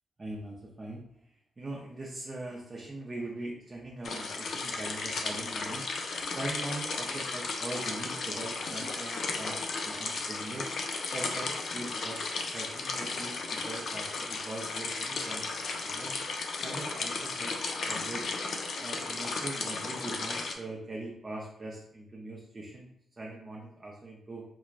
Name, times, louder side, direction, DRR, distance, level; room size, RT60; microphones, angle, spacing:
voice 1, 0.2-1.0 1.6-5.9 6.3-10.7 11.1-16.1 16.6-18.3 18.8-22.9 23.2-24.4, right 2 dB, 25° right, -3 dB, 0.5 m, -41 dB
sound 1, 4.0-20.5, left 3 dB, 65° left, 0.4 m, -35 dB
4.4 x 2.0 x 2.4 m, 0.72 s
wide cardioid pair, 130°, 0 cm